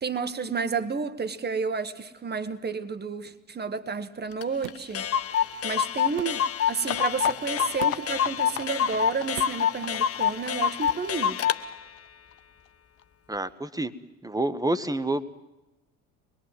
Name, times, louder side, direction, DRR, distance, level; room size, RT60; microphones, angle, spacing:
voice 1, 0.0-5.1 5.6-11.4, right 5 dB, 25° right, 1.6 m, -31 dB
Clock, 4.4-4.5 4.7-4.8 4.9-11.6, left 8 dB, 35° left, 1.0 m, -26 dB
sound 1, 4.6-4.9 6.2-6.4 7.8-8.2 9.4-9.7 10.8-11.1, right 16 dB, 65° right, 0.8 m, -40 dB
sound 2, 6.8-12.4 12.7-12.8 13.0-13.1 13.3-13.4, left 10 dB, 85° left, 0.8 m, -39 dB
voice 2, 13.3-13.9 14.2-15.3, right 1 dB, 10° right, 1.3 m, -28 dB
23.5 x 21.0 x 7.8 m
hypercardioid pair, 60°, 39 cm